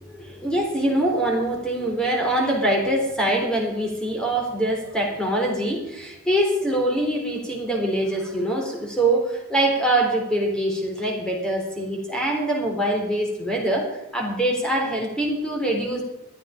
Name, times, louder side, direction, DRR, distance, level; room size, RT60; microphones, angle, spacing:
voice 1, 0.0-16.0, right 1 dB, 5° left, 0 dB, 3.7 m, -24 dB
14.0 x 12.0 x 5.1 m, 0.91 s
head